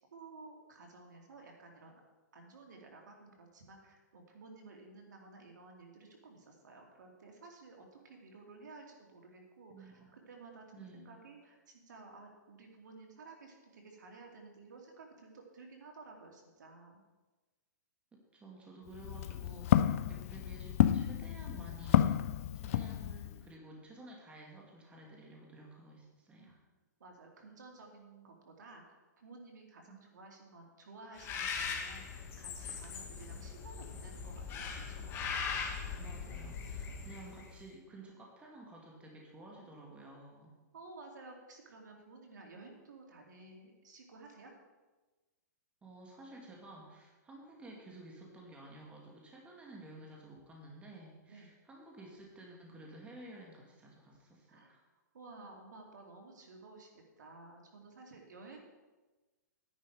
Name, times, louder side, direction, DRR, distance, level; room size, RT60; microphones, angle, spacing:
voice 1, 0.1-2.0 2.3-17.0 26.4-26.5 27.0-35.2 40.7-44.5 51.3-51.5 54.5-54.7 55.1-56.9 57.2-58.7, right 3 dB, 80° right, 2 dB, 2.7 m, -54 dB
voice 2, 9.7-10.1 10.7-11.2 18.1-22.1 22.5-26.6 29.9-30.0 36.0-40.5 45.8-54.8, right 2 dB, 10° right, -1 dB, 2.3 m, -53 dB
Walk footsteps, 18.9-23.4, left 11 dB, 50° left, 0.5 m, -30 dB
Bird, 31.2-37.6, left 5 dB, 25° left, 1.6 m, -40 dB
11.0 x 10.0 x 4.9 m, 1.2 s
hypercardioid pair, 145°, 10 cm